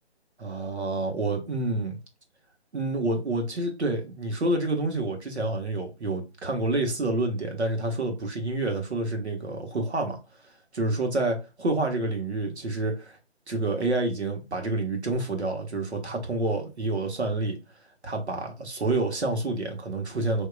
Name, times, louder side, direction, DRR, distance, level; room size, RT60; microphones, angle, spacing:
voice 1, 0.4-2.0 2.7-10.2 10.7-13.2 13.5-17.6 18.0-20.5, right 2 dB, 80° right, 1.4 m, -28 dB
4.6 x 2.9 x 2.3 m
figure-of-eight pair, 150°, 33 cm